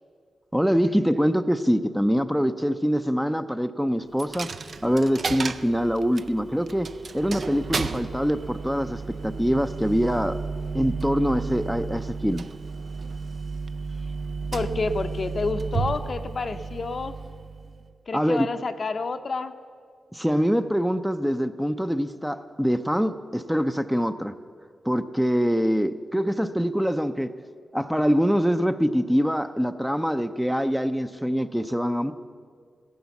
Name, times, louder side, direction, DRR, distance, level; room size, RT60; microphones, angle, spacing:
voice 1, 0.5-4.5 4.8-6.9 7.1-10.4 10.7-12.4 18.1-18.5 20.1-24.3 24.9-27.3 27.7-32.1, equal, 5° right, 9 dB, 0.5 m, -24 dB
Coin (dropping), 4.2-17.9, right 4 dB, 55° right, 0.5 m, -33 dB
voice 2, 14.5-17.2 18.1-19.5, left 3 dB, 50° left, 9 dB, 0.6 m, -29 dB
15.0 x 10.5 x 7.1 m, 2.1 s
cardioid pair, 80°, 0 cm